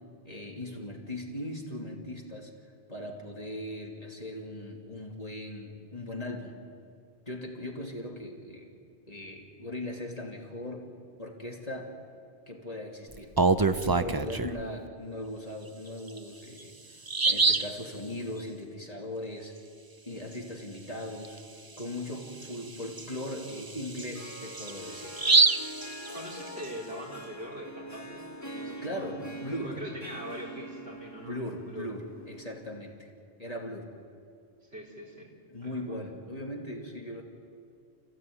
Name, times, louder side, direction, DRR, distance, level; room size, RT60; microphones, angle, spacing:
voice 1, 0.2-2.5 2.9-6.6 7.3-8.7 9.1-10.9 11.2-12.0 12.5-13.4 13.7-17.0 17.2-19.5 20.1-21.4 21.8-25.1 28.8-29.8 31.2-33.1 33.4-33.9 35.5-37.2, left 1 dB, 35° left, -1 dB, 3.0 m, -39 dB
Bird vocalization bird call bird song, 13.1-14.6 16.1-16.2 16.6-16.7 17.1-17.8 21.2-21.4 21.8-21.9 22.4-26.6, right 4 dB, 25° right, 0.6 m, -26 dB
Harp, 23.9-32.9, right 1 dB, 15° left, 1.6 m, -44 dB
voice 2, 26.1-29.2 29.6-31.4 31.6-31.9 34.6-35.3 35.6-36.1, right 1 dB, 70° right, -3 dB, 4.7 m, -42 dB
29.5 x 15.5 x 9.4 m, 2.5 s
omnidirectional pair, 1.1 m